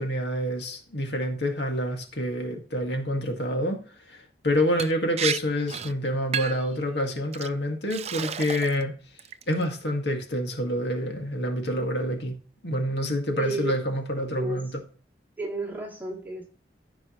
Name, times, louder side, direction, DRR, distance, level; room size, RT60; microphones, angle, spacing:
voice 1, 0.0-8.9 9.5-12.4 12.6-14.7, equal, 70° left, 2.0 m, -27 dB
Liquid, 4.8-4.9 5.2-5.4 5.7-5.9 6.3-6.7 7.3-7.5 7.9-8.8 9.2-9.6, right 8 dB, 35° right, 0.5 m, -31 dB
voice 2, 13.3-13.7 14.3-14.6 15.4-16.4, right 2 dB, 10° right, 2.8 m, -31 dB
15.0 x 5.3 x 3.1 m
head